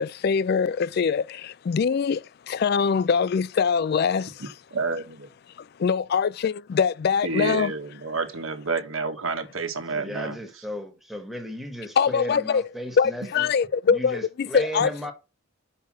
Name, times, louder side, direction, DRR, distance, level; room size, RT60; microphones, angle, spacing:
voice 1, 0.0-4.3 5.8-7.7 12.0-12.6 13.0-14.9, left 6 dB, 50° left, 0.3 m, -23 dB
voice 2, 4.4-5.3 7.2-10.4, right 4 dB, 80° right, 1.4 m, -29 dB
voice 3, 9.9-13.5 13.9-15.1, equal, ahead, 1.4 m, -35 dB
5.7 x 5.6 x 6.1 m
head